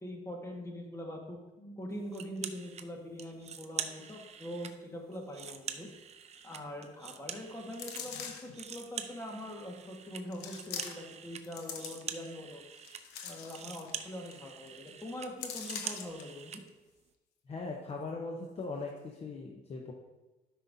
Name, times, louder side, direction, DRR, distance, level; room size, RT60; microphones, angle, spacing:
voice 1, 0.0-1.4 1.8-5.9 6.4-12.6 13.2-16.6, left 1 dB, 15° left, 1 dB, 1.6 m, -43 dB
sound 1, 2.1-2.9 3.2-4.7 5.1-8.0 8.3-16.6, right 7 dB, 40° right, 0.6 m, -44 dB
sound 2, 7.7-8.6 9.3-9.4 10.3-11.2 11.4-12.3 12.7-13.9 14.3-14.4 14.7-14.9 15.4-16.2 16.7-16.8, left 7 dB, 85° left, 1.0 m, -43 dB
voice 2, 17.5-19.9, left 3 dB, 35° left, 0 dB, 0.9 m, -40 dB
12.5 x 5.6 x 2.7 m, 1.1 s
cardioid pair, 110°, 17 cm